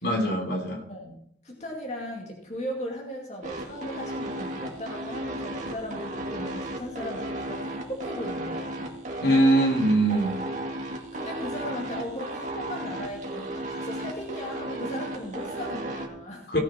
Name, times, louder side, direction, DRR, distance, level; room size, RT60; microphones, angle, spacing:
voice 1, 0.0-0.8 9.2-10.4 16.5-16.6, right 1 dB, 70° left, 1 dB, 3.3 m, -22 dB
voice 2, 1.4-8.9 10.5-16.5, equal, 40° left, -1 dB, 2.3 m, -37 dB
sound 1, 3.4-16.1, right 1 dB, 40° right, 2.1 m, -34 dB
17.5 x 7.1 x 4.4 m, 0.69 s
head